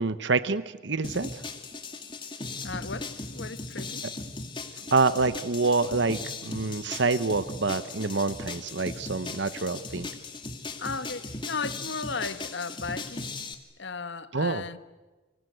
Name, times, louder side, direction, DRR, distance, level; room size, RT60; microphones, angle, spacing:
voice 1, 0.0-1.4 4.9-10.1 14.3-14.6, right 3 dB, 65° right, 0.9 m, -27 dB
sound 1, 1.0-13.5, left 3 dB, 25° left, 2.2 m, -38 dB
voice 2, 2.6-4.1 10.8-13.5 13.8-14.8, left 4 dB, 65° left, 1.2 m, -35 dB
29.5 x 25.5 x 8.1 m
head